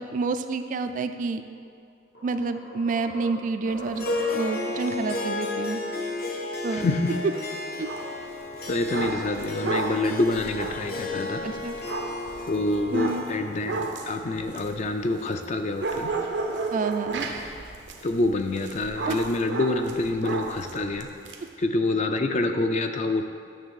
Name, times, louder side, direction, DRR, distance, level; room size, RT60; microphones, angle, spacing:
voice 1, 0.0-1.4 2.2-4.1 4.3-5.8 6.6-6.9 7.8-7.9 11.4-11.8 12.9-13.2 16.7-17.3 19.1-19.2, right 4 dB, 45° right, 9 dB, 0.3 m, -28 dB
sound 1, 1.6-1.7 2.1-4.7, right 1 dB, 80° left, 1.9 m, -41 dB
Harp, 3.9-16.5, left 2 dB, 60° left, 0.8 m, -34 dB
voice 2, 6.7-7.2 8.7-11.4 12.5-16.1 18.0-21.1 21.6-23.4, left 2 dB, 40° left, 6 dB, 0.4 m, -26 dB
sound 2, 7.8-8.1 8.5-15.5 15.8-21.4, right 3 dB, 90° right, 0.7 m, -33 dB
8.8 x 3.3 x 6.4 m, 2.2 s
head